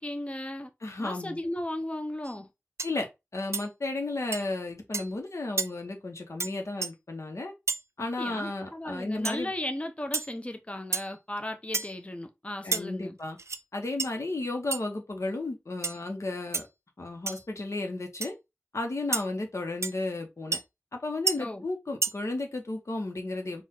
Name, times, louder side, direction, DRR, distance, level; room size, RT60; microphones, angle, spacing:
voice 1, 0.0-0.7 1.0-2.5 8.0-13.2 21.3-21.6, left 1 dB, 25° left, 0.6 m, -36 dB
voice 2, 0.8-1.4 2.8-3.1 3.3-7.5 8.0-9.5 12.6-13.4 13.7-16.6 17.0-18.3 18.7-20.6 20.9-23.6, left 2 dB, 85° left, 1.0 m, -33 dB
sound 1, 2.2-2.4 2.8-3.0 3.5-3.7 4.3-4.4 4.9-5.1 5.6-5.7 6.4-6.5 6.8-6.9 7.7-7.8 9.2-9.4 10.1-10.3 10.9-11.1 11.7-12.0 12.7-12.8 13.4-13.6 14.0-14.1 14.7-14.8 15.8-16.0 16.5-16.6 17.3-17.4 18.2-18.3 19.1-19.2 19.8-19.9 20.5-20.6 21.3-21.4 22.0-22.1, right 3 dB, 75° right, 0.3 m, -30 dB
4.5 x 2.4 x 3.7 m
wide cardioid pair, 45°, 5 cm